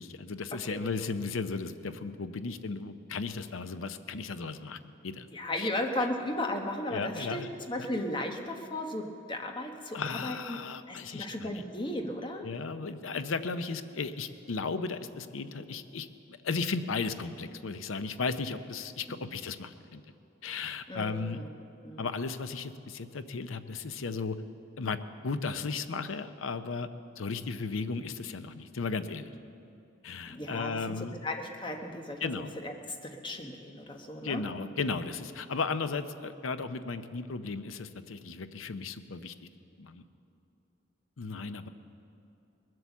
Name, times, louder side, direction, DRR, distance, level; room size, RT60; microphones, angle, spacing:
voice 1, 0.0-5.3 5.5-5.7 6.9-7.5 7.8-7.9 9.9-11.5 12.4-20.0 20.4-21.4 22.0-24.4 24.8-25.0 25.2-26.9 27.2-29.3 30.0-31.2 32.2-32.5 34.2-39.3 39.8-40.0 41.2-41.7, left 4 dB, 85° left, 11 dB, 0.7 m, -35 dB
voice 2, 5.3-10.6 10.9-12.5 19.1-19.4 20.9-21.5 21.8-22.1 30.3-30.9 31.2-34.7, left 1 dB, 25° left, 3 dB, 1.1 m, -36 dB
20.5 x 7.8 x 7.2 m, 2.7 s
head